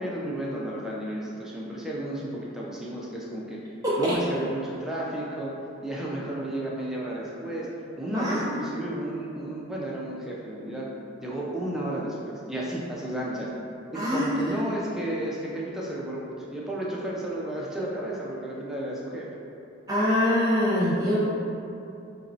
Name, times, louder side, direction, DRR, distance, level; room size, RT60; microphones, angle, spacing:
voice 1, 0.0-3.6 4.0-5.5 5.8-7.7 8.0-10.9 11.2-13.5 13.9-19.3, right 1 dB, ahead, -5 dB, 0.4 m, -32 dB
voice 2, 3.8-4.2 8.1-8.4 13.9-14.6 19.9-21.2, left 1 dB, 20° right, -9 dB, 0.8 m, -24 dB
4.0 x 2.9 x 2.6 m, 2.7 s
head